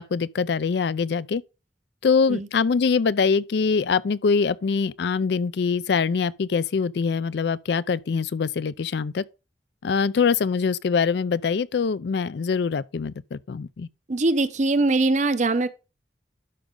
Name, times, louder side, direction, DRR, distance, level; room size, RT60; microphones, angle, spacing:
voice 1, 0.0-1.4 2.0-9.2 9.8-13.9, left 5 dB, 65° left, 0.4 m, -23 dB
voice 2, 14.1-15.7, right 2 dB, 40° right, 0.6 m, -22 dB
12.0 x 5.2 x 3.7 m
head